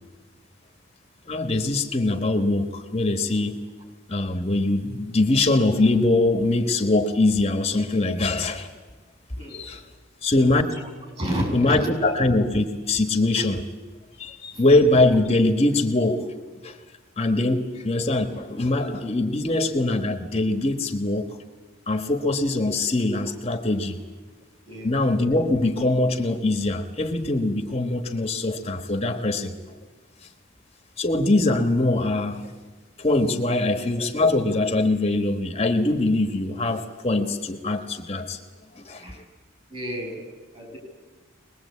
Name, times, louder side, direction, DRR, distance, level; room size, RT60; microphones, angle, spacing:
voice 1, 1.3-3.5 4.1-8.7 9.5-9.8 10.2-10.6 11.5-13.6 14.2-16.3 16.6-16.8 17.2-21.3 21.9-24.0 24.8-29.5 31.0-32.4 33.0-38.4 38.7-39.1, left 2 dB, 30° left, 6 dB, 1.3 m, -22 dB
voice 2, 9.4-9.7 10.7-10.8 11.2-12.1 14.5-14.6 24.7-24.9 39.0-39.2 39.7-40.2 40.5-40.8, equal, 30° right, 2 dB, 6.6 m, -31 dB
23.5 x 20.5 x 8.5 m, 1.3 s
head